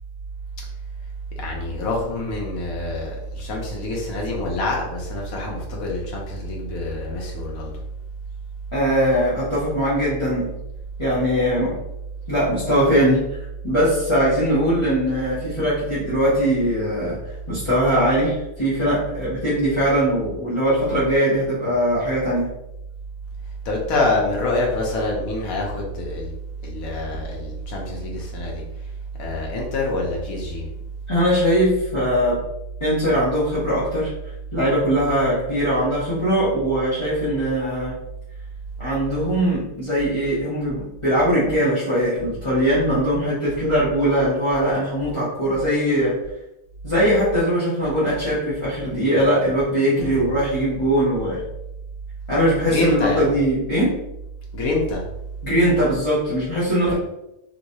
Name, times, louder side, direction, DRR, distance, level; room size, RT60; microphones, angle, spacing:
voice 1, 1.4-7.7 23.6-26.3 26.6-28.6 29.2-30.6 50.0-50.3 52.7-53.3 54.5-55.0 56.8-56.9, left 2 dB, 85° left, -2 dB, 1.3 m, -26 dB
voice 2, 8.7-10.5 11.0-11.7 12.3-13.4 13.6-17.2 17.5-22.5 31.1-32.4 32.8-34.1 34.5-37.9 38.8-46.2 46.8-51.4 52.3-53.9 55.4-56.9, equal, 25° left, -11 dB, 1.0 m, -21 dB
3.1 x 3.0 x 2.7 m, 0.89 s
omnidirectional pair, 1.4 m